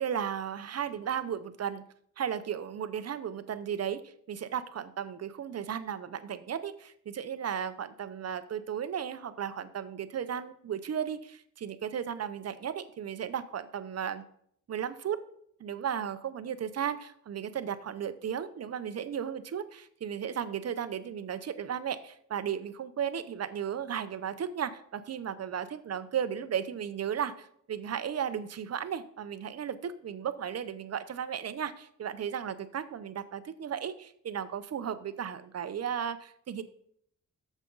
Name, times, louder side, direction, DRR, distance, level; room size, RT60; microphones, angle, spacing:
voice 1, 0.0-1.8 2.2-14.2 14.7-15.2 15.6-36.6, right 8 dB, 55° right, 12 dB, 0.7 m, -35 dB
9.1 x 7.2 x 3.9 m, 0.67 s
wide cardioid pair, 110°, 31 cm